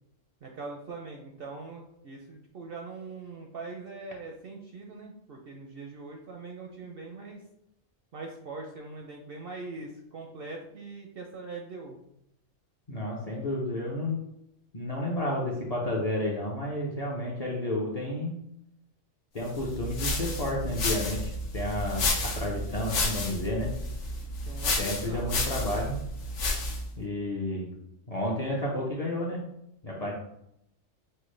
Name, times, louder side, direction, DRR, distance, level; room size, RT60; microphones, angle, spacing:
voice 1, 0.4-7.4 8.1-12.0 23.5-23.9 24.5-25.3, right 3 dB, 65° right, 1 dB, 0.6 m, -42 dB
voice 2, 12.9-14.2 14.7-18.4 19.3-23.7 24.8-26.0 27.0-27.8 28.1-29.4 29.8-30.1, left 1 dB, 45° left, -2 dB, 0.5 m, -31 dB
sound 1, 19.6-26.9, left 2 dB, 70° left, 1.0 m, -31 dB
5.4 x 2.1 x 3.1 m, 0.80 s
omnidirectional pair, 1.4 m